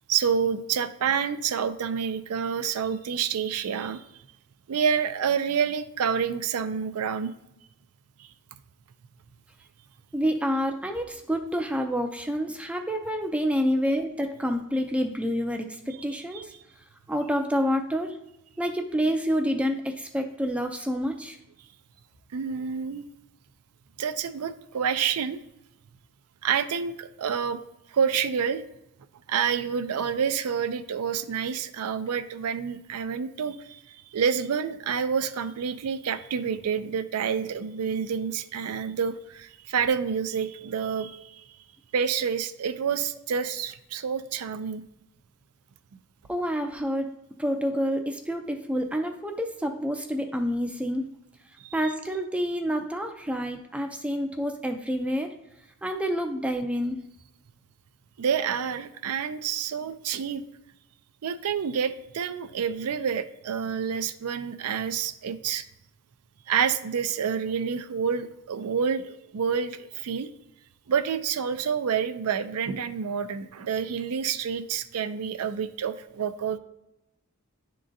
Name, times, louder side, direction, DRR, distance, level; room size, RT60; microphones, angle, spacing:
voice 1, 0.1-4.0 4.7-7.3 8.2-8.3 16.3-16.4 22.3-23.1 24.0-25.4 26.4-27.6 27.9-28.6 29.3-41.4 41.9-44.8 51.6-51.9 58.2-60.4 61.2-65.6 66.5-70.3 70.9-76.6, right 7 dB, 75° right, 11 dB, 0.4 m, -28 dB
voice 2, 10.1-16.5 17.1-18.2 18.6-21.4 46.3-47.1 47.4-51.1 51.7-55.3 55.8-57.0, equal, 5° right, 4 dB, 0.4 m, -28 dB
10.0 x 3.7 x 2.6 m, 0.87 s
head